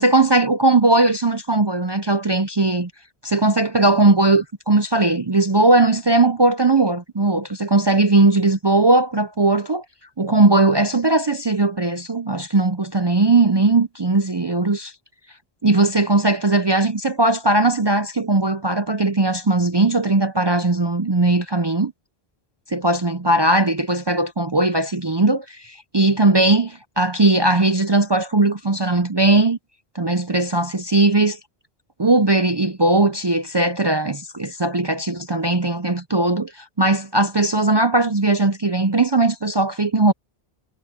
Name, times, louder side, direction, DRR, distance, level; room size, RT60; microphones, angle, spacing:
voice 1, 0.0-2.9 3.2-9.8 10.2-14.9 15.6-21.9 22.7-29.6 29.9-31.4 32.0-40.1, right 2 dB, 30° right, 0.5 m, -18 dB
omnidirectional pair, 1.1 m